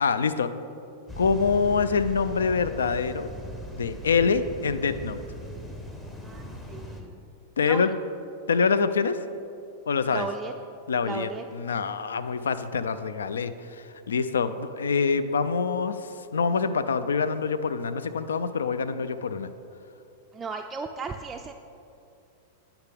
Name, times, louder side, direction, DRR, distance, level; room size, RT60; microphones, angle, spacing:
voice 1, 0.0-0.5 1.2-3.3 3.7-5.2 7.6-7.9 8.5-9.2 9.9-10.3 10.9-19.5, left 5 dB, 85° left, 12 dB, 0.3 m, -25 dB
sound 1, 1.1-7.0, equal, 15° left, 0.9 m, -39 dB
voice 2, 6.2-7.2 7.7-7.9 10.1-10.5 11.0-11.4 20.3-21.5, right 4 dB, 20° right, 4 dB, 0.3 m, -35 dB
9.6 x 5.8 x 3.4 m, 2.6 s
hypercardioid pair, 105°, 0 cm